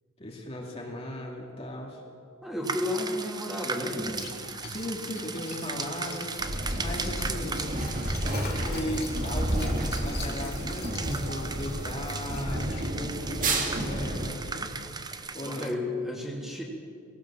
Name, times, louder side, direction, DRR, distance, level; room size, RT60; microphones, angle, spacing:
voice 1, 0.2-2.0 4.6-7.6 8.3-14.7 15.3-15.8, left 1 dB, 30° left, -1 dB, 2.6 m, -37 dB
voice 2, 2.4-4.2 15.4-16.6, left 1 dB, ahead, -2 dB, 3.0 m, -32 dB
sound 1, 2.6-15.7, right 4 dB, 20° right, 0.8 m, -38 dB
Liquid, 3.9-15.1, left 3 dB, 55° left, 3.2 m, -45 dB
sound 2, 6.4-14.3, right 1 dB, 40° right, 2.4 m, -31 dB
20.0 x 18.0 x 7.5 m, 2.3 s
head